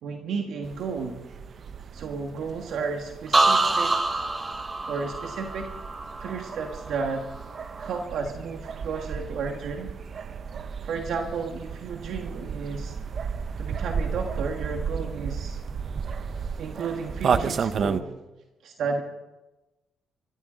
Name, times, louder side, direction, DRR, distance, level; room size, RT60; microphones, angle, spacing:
voice 1, 0.0-1.2 1.9-3.9 4.9-5.7 6.2-7.2 7.8-9.9 10.8-12.9 13.6-15.6 16.6-18.1 18.6-19.0, right 5 dB, 70° right, 3 dB, 1.6 m, -32 dB
sound 1, 0.6-18.0, right 6 dB, 50° right, 0.8 m, -33 dB
sound 2, 3.3-7.1 7.5-8.0, right 2 dB, 25° right, 1.4 m, -26 dB
25.0 x 14.0 x 3.9 m, 1.1 s
cardioid pair, 90°, 0 cm